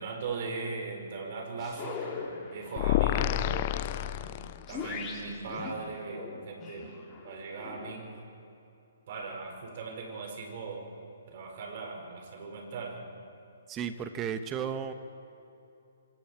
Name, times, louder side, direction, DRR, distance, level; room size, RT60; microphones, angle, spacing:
voice 1, 0.0-4.4 4.7-6.9 7.2-8.2 9.1-10.9 11.3-13.1, right 4 dB, 50° right, 2 dB, 5.7 m, -39 dB
sound 1, 1.6-7.9, left 5 dB, 20° left, 3.8 m, -42 dB
sound 2, 2.8-4.9, left 14 dB, 40° left, 0.6 m, -29 dB
voice 2, 13.7-14.9, right 8 dB, 20° right, 9 dB, 1.3 m, -34 dB
26.5 x 25.5 x 4.7 m, 2.8 s
figure-of-eight pair, 130°, 0 cm